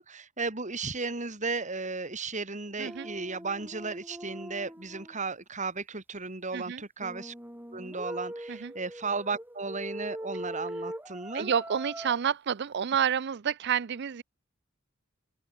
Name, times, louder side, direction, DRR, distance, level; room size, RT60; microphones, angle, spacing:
voice 1, 0.0-7.3 7.7-11.5, right 4 dB, 40° right, 4.0 m, -35 dB
sound 1, 2.8-5.2 7.0-12.2, right 1 dB, 10° right, 6.0 m, -42 dB
voice 2, 11.3-14.2, right 8 dB, 55° right, 0.5 m, -29 dB
open air
head